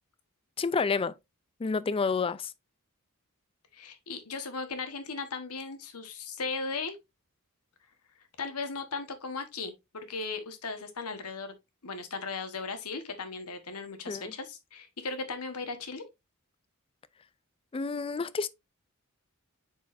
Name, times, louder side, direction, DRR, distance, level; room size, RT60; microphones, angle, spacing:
voice 1, 0.6-1.1 1.6-2.5 14.1-14.3 17.7-18.5, left 4 dB, 25° left, 0.3 m, -29 dB
voice 2, 3.7-7.0 8.4-11.6 11.8-16.0, left 4 dB, 90° left, 1.3 m, -37 dB
8.0 x 4.7 x 2.5 m
head